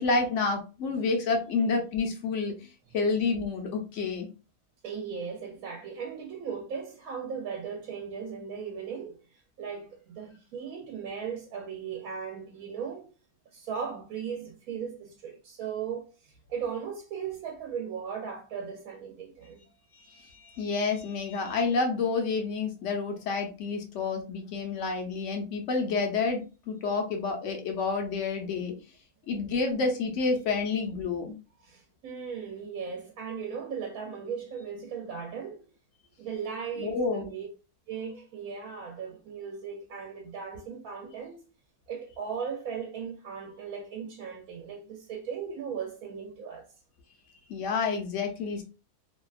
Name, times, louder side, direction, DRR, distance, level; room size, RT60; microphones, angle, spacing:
voice 1, 0.0-2.6 2.9-4.3 19.9-28.7 29.3-31.4 36.8-37.3 47.5-48.6, left 4 dB, 65° left, 0.9 m, -29 dB
voice 2, 4.8-13.1 13.5-19.6 31.6-35.6 36.2-37.5 37.9-41.4 41.9-46.7, right 6 dB, 75° right, 1.0 m, -37 dB
2.7 x 2.2 x 2.3 m
omnidirectional pair, 1.6 m